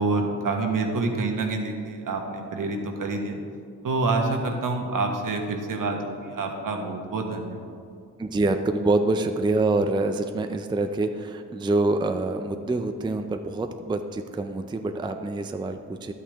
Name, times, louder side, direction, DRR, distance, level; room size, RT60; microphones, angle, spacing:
voice 1, 0.0-3.4 3.8-7.8, right 3 dB, 65° right, 3 dB, 1.3 m, -27 dB
voice 2, 8.2-16.1, right 2 dB, 15° right, 7 dB, 0.4 m, -26 dB
11.0 x 8.6 x 3.5 m, 2.3 s
cardioid pair, 85°, 35 cm